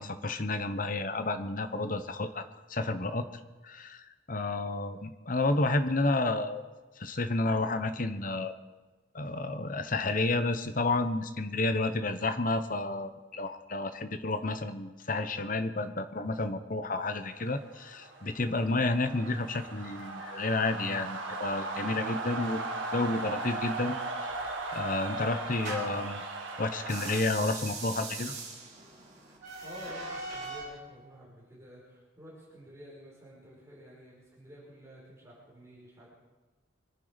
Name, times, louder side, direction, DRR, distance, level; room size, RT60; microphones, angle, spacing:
voice 1, 0.0-2.4 2.7-3.3 3.6-6.6 7.0-8.5 9.1-24.0 24.3-24.4 24.7-26.2 26.6-28.4, left 2 dB, 45° left, 10 dB, 1.0 m, -31 dB
sound 1, 17.3-27.2, right 3 dB, 85° right, 2.1 m, -37 dB
sound 2, 24.3-26.1 26.8-30.8, right 3 dB, 40° right, 6.0 m, -41 dB
voice 2, 29.6-36.1, equal, 15° right, -7 dB, 5.0 m, -50 dB
24.5 x 10.5 x 5.2 m, 1.2 s
head